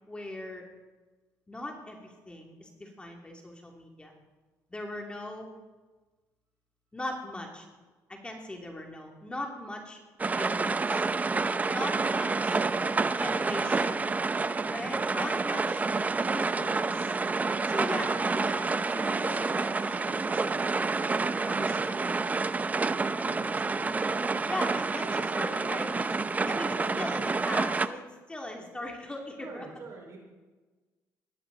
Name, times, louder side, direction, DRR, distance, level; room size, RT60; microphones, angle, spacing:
voice 1, 0.1-0.6 1.5-4.1 4.7-5.5 6.9-7.7 8.1-10.0 10.3-11.0 11.7-12.6 13.2-14.1 14.7-15.8 16.3-17.1 17.7-18.6 18.9-20.9 21.5-22.3 23.1-29.7, left 1 dB, 15° left, 1 dB, 2.6 m, -40 dB
sound 1, 10.2-27.9, right 4 dB, 25° right, 0.6 m, -28 dB
voice 2, 12.5-13.5 14.5-15.0 17.8-18.1 21.4-21.7 23.2-23.5 26.7-27.0 29.4-30.2, right 3 dB, 55° right, 1 dB, 4.7 m, -47 dB
18.0 x 14.0 x 4.0 m, 1.3 s
cardioid pair, 95°, 6 cm